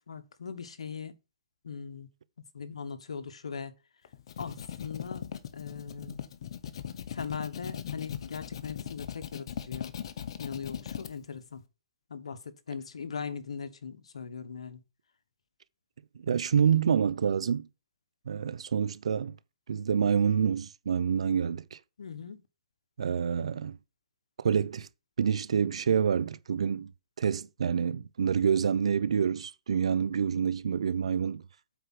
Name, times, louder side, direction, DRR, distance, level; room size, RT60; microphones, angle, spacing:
voice 1, 0.1-1.2 1.6-2.1 2.5-3.7 4.4-6.2 7.1-9.9 10.4-11.6 12.1-14.8 22.0-22.4, left 6 dB, 85° left, 1.3 m, -40 dB
sound 1, 4.0-11.1, left 9 dB, 60° left, 1.0 m, -39 dB
voice 2, 16.2-17.7 18.3-19.4 19.7-21.8 23.0-23.8 24.4-24.9 25.2-26.9 27.2-31.4, right 7 dB, 80° right, 0.6 m, -27 dB
8.1 x 4.8 x 6.0 m
hypercardioid pair, 140°, 3 cm